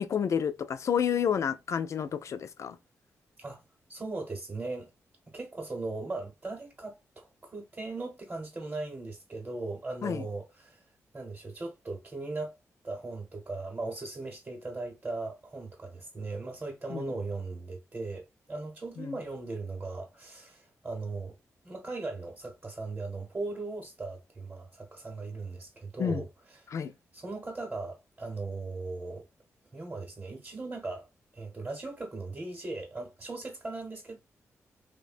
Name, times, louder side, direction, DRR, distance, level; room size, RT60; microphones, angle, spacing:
voice 1, 0.0-2.8 10.0-10.2 16.9-17.1 19.0-19.1 26.0-26.2 26.7-26.9, left 8 dB, 60° left, 0.3 m, -30 dB
voice 2, 3.9-4.9 5.3-10.8 11.1-12.5 12.8-21.3 21.6-26.7 27.1-29.2 29.7-31.1 31.3-34.2, right 3 dB, 30° right, 0.9 m, -38 dB
3.1 x 2.1 x 2.5 m
cardioid pair, 75°, 6 cm